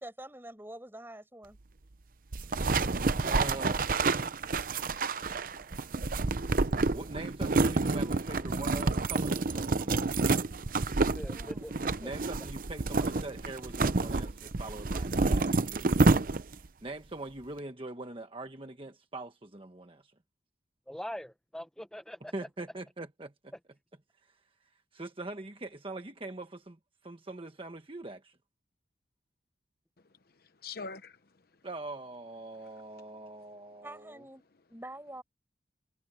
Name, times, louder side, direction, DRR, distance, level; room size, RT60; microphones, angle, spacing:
voice 1, 0.0-1.6 11.2-11.9 33.8-35.2, right 1 dB, 10° right, 6.1 m, -46 dB
sound 1, 2.3-16.7, right 3 dB, 50° right, 0.7 m, -28 dB
voice 2, 3.2-4.0 6.9-10.1 12.0-16.1 16.8-20.1 22.3-23.5 24.9-28.4 31.6-34.2, right 2 dB, 30° right, 1.3 m, -43 dB
voice 3, 11.1-11.7 12.0-12.1 20.9-22.3, equal, 5° left, 1.0 m, -42 dB
voice 4, 30.3-31.2 32.7-33.6, left 4 dB, 55° left, 1.0 m, -46 dB
head